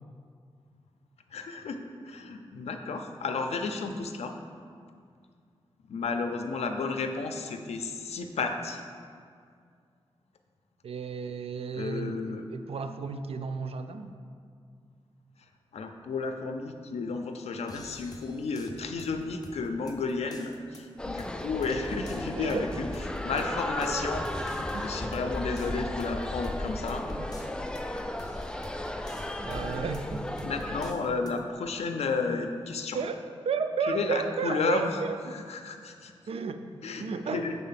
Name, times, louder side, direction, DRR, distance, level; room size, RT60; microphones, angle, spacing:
voice 1, 1.3-1.8 2.0-4.4 5.9-8.8 11.7-12.5 15.7-22.9 23.2-27.0 30.4-33.0 33.9-34.9 35.5-36.1 36.8-37.6, left 4 dB, 90° left, 6 dB, 0.5 m, -32 dB
voice 2, 10.8-14.1 22.4-22.7 24.6-24.9 27.2-27.3 29.4-30.3 32.9-35.5 36.3-37.5, right 5 dB, 65° right, 8 dB, 0.4 m, -33 dB
sound 1, 17.7-31.4, left 2 dB, 35° left, 0.7 m, -49 dB
sound 2, 21.0-30.9, left 1 dB, 10° left, 0.3 m, -34 dB
6.5 x 4.0 x 5.7 m, 2.2 s
wide cardioid pair, 90°, 11 cm